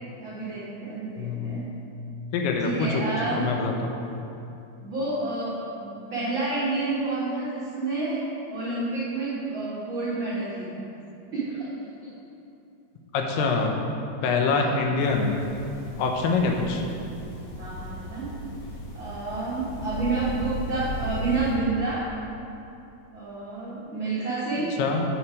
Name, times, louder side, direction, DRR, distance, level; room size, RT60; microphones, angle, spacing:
voice 1, 0.2-1.6 2.6-3.4 4.8-8.2 8.5-10.8 11.3-11.7 12.0-12.1 14.5-14.8 16.4-16.9 17.6-18.3 18.9-22.0 23.1-24.7, right 3 dB, 55° right, -9 dB, 1.4 m, -29 dB
voice 2, 1.2-1.6 2.3-4.0 11.0-11.2 13.1-13.8 14.2-15.4 16.0-16.8 24.8-25.0, left 4 dB, 90° left, 2 dB, 3.0 m, -25 dB
sound 1, 15.0-21.6, equal, 70° left, 1.6 m, -36 dB
8.5 x 7.9 x 4.8 m, 2.7 s
omnidirectional pair, 4.6 m